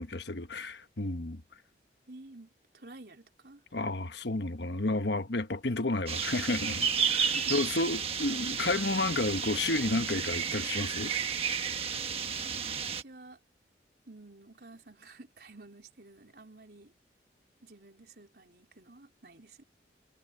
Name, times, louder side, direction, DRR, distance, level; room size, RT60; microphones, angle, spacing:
voice 1, 0.0-1.4 3.7-11.1, left 2 dB, 75° left, 1.2 m, -31 dB
voice 2, 2.1-3.6 6.6-7.7 12.6-13.4 14.1-16.9 17.6-19.6, right 2 dB, 60° right, 4.0 m, -51 dB
sound 1, 6.1-13.0, right 6 dB, 35° right, 1.4 m, -32 dB
head